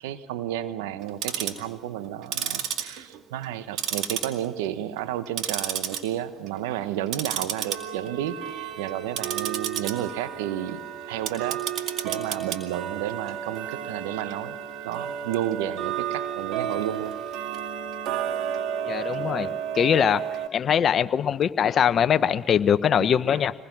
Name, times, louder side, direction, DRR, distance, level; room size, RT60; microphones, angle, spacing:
voice 1, 0.0-10.8 11.1-14.6 14.8-17.1, right 11 dB, 90° right, 12 dB, 1.0 m, -32 dB
Tick-tock, 1.0-1.6 2.2-3.5 3.8-4.7 5.0-6.0 6.4-6.6 7.1-20.5, right 9 dB, 70° right, 2.2 m, -31 dB
voice 2, 18.9-20.2 20.5-23.5, left 8 dB, 50° left, 12 dB, 0.9 m, -22 dB
25.5 x 20.0 x 6.1 m, 1.1 s
supercardioid pair, 70°, 0 cm